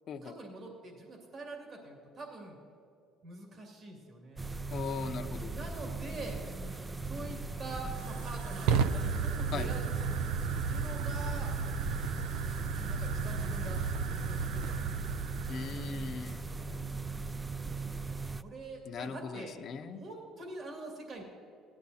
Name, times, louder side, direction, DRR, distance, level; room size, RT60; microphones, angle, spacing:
voice 1, 0.2-2.6 3.2-4.6 5.5-6.4 7.1-9.9 10.7-11.6 12.6-13.8 14.3-15.2 16.4-17.1 18.0-21.2, right 2 dB, 45° right, 0 dB, 2.3 m, -45 dB
sound 1, 4.4-18.4, right 3 dB, 20° right, 0.3 m, -39 dB
voice 2, 4.7-5.5 9.5-9.7 15.5-16.4 18.9-20.0, left 6 dB, 50° left, 6 dB, 0.7 m, -39 dB
Fire, 7.1-16.1, right 5 dB, 90° right, 0.5 m, -34 dB
17.5 x 12.0 x 2.8 m, 2.7 s
cardioid pair, 100°, 0 cm